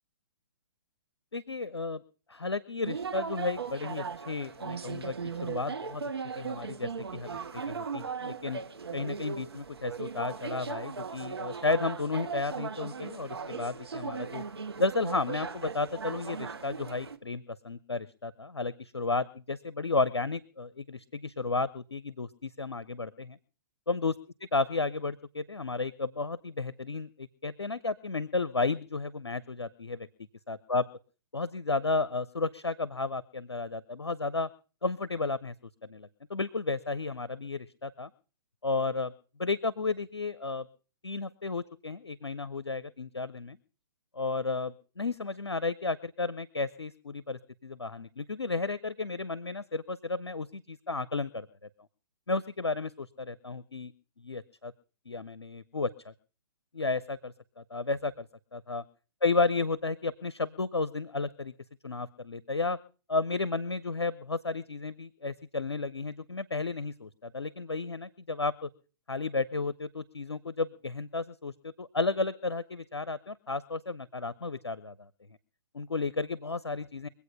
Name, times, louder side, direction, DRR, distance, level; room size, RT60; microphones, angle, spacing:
voice 1, 1.3-2.0 2.3-6.0 6.4-8.6 8.9-14.4 14.8-23.4 23.9-24.1 24.5-30.1 30.5-30.8 31.3-34.5 34.8-35.5 35.8-38.1 38.6-39.1 39.4-40.7 41.0-43.6 44.1-51.5 52.3-53.9 54.2-54.7 55.1-56.1 56.7-58.3 58.5-58.8 59.2-61.5 61.8-62.8 63.1-68.7 69.1-75.1 75.7-77.1, left 3 dB, 85° left, 17 dB, 0.7 m, -33 dB
sound 1, 2.8-17.2, right 5 dB, 70° right, 1.1 m, -38 dB
23.0 x 8.4 x 5.4 m, 0.37 s
figure-of-eight pair, 125°, 14 cm